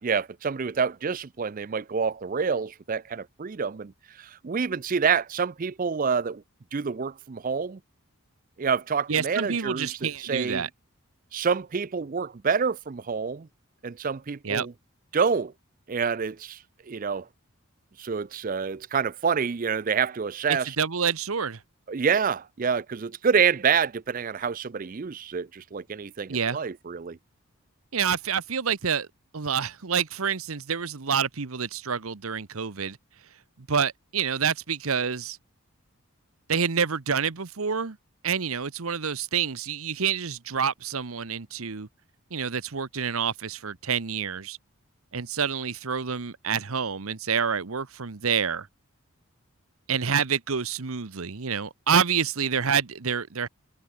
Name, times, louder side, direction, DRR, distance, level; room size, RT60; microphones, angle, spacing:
voice 1, 0.0-3.9 4.2-6.4 6.7-7.8 8.6-10.7 11.3-13.5 13.8-14.7 15.1-15.5 15.9-16.6 16.9-17.3 18.0-20.8 21.9-27.2, right 6 dB, 40° right, 0.4 m, -27 dB
voice 2, 9.1-10.7 14.4-14.7 20.5-21.6 26.3-26.6 27.9-29.1 29.3-33.0 33.6-35.4 36.5-38.0 38.2-41.9 42.3-44.6 45.1-48.7 49.9-53.5, right 6 dB, 75° right, 1.0 m, -27 dB
head